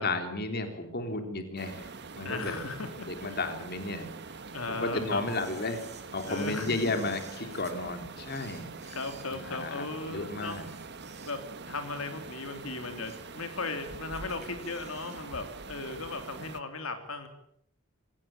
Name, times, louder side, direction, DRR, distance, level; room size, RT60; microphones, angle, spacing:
voice 1, 0.0-1.9 2.2-2.6 3.0-4.1 4.7-5.8 6.1-8.7 9.3-10.7, left 2 dB, 50° left, 7 dB, 3.5 m, -33 dB
sound 1, 1.6-16.6, right 4 dB, 55° right, 1.6 m, -44 dB
voice 2, 2.2-3.4 4.5-5.2 6.3-7.1 8.8-10.6 11.2-17.3, left 3 dB, 80° left, 7 dB, 3.2 m, -37 dB
Camera, 5.3-7.8 8.2-9.9 10.3-11.7 12.1-12.2 12.7-13.4 13.7-13.8 14.1-15.3 15.5-15.6, right 7 dB, 35° right, 4.5 m, -53 dB
26.5 x 17.0 x 8.9 m, 0.70 s
head